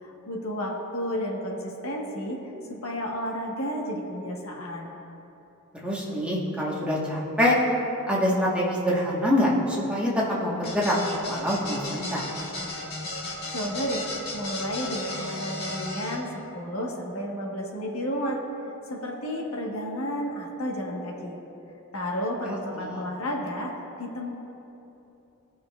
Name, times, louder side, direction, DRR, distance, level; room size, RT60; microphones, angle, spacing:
voice 1, 0.0-2.4 2.8-4.9 13.5-14.0 14.3-16.3 16.5-18.4 18.9-21.4 21.9-23.7 24.0-24.4, equal, 70° left, -1 dB, 1.4 m, -31 dB
voice 2, 5.8-7.5 8.1-10.1 10.4-11.0 11.3-12.2 22.4-23.0, left 1 dB, 5° right, -6 dB, 1.3 m, -25 dB
sound 1, 10.6-16.1, left 2 dB, 45° left, 1.6 m, -34 dB
18.0 x 6.1 x 2.4 m, 3.0 s
head